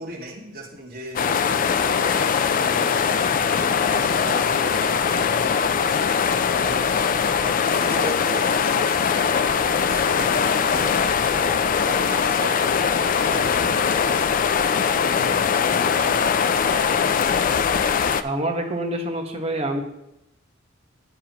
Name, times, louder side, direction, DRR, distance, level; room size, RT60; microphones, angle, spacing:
voice 1, 0.0-6.1 6.6-9.3 9.8-12.6 13.2-16.6, right 1 dB, 50° right, -4 dB, 1.8 m, -37 dB
sound 1, 1.1-18.2, left 6 dB, 40° left, 0.3 m, -21 dB
voice 2, 18.2-19.8, right 1 dB, 30° right, 1 dB, 1.3 m, -26 dB
9.7 x 8.9 x 3.0 m, 0.83 s
head